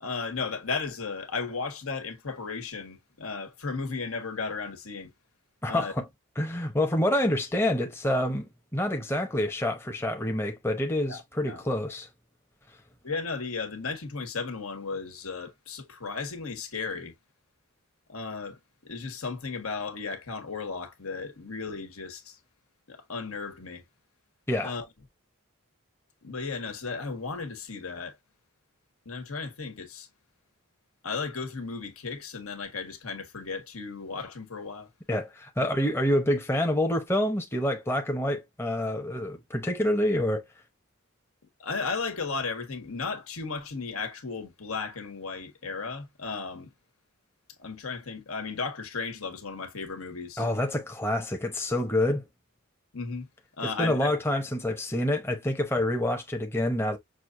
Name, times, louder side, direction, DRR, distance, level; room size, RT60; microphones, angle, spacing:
voice 1, 0.0-5.1 5.7-5.9 11.1-11.2 11.5-11.6 13.0-17.1 18.1-22.4 22.9-23.8 24.6-24.9 26.2-28.2 29.0-30.1 31.0-34.9 35.6-35.7 41.6-46.7 47.6-50.4 52.9-53.3 53.6-54.4, left 4 dB, 75° left, 1.5 m, -35 dB
voice 2, 5.6-6.1 6.4-12.1 24.5-24.7 35.1-40.4 50.4-52.3 53.6-57.0, left 1 dB, 10° left, 0.8 m, -27 dB
6.2 x 2.6 x 2.6 m
head